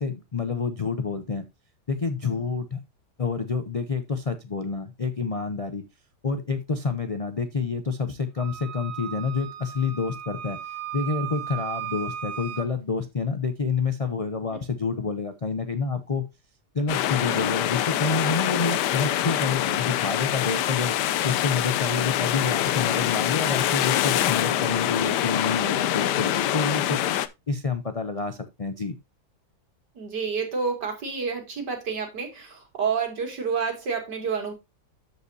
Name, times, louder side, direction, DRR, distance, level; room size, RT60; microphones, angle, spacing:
voice 1, 0.0-1.4 1.9-2.8 3.2-5.8 6.2-10.6 10.9-16.3 16.7-21.0 21.2-27.0 27.5-29.0, left 4 dB, 70° left, 0.3 m, -28 dB
Wind instrument woodwind instrument, 8.4-12.7, right 10 dB, 60° right, 1.1 m, -36 dB
sound 1, 16.9-27.3, left 12 dB, 85° left, 1.2 m, -25 dB
voice 2, 30.0-34.5, right 5 dB, 85° right, 3.0 m, -29 dB
13.0 x 5.0 x 2.7 m
omnidirectional pair, 1.8 m